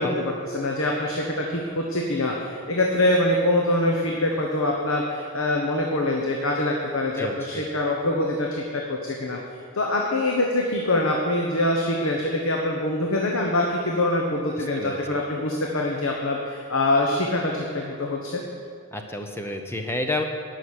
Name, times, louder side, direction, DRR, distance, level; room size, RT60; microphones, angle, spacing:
voice 1, 0.0-9.4 9.7-18.4, left 1 dB, 65° left, 0 dB, 1.1 m, -24 dB
voice 2, 7.2-7.6 14.6-15.0 18.9-20.2, left 2 dB, 10° left, 4 dB, 0.8 m, -30 dB
11.0 x 6.3 x 8.8 m, 2.1 s
head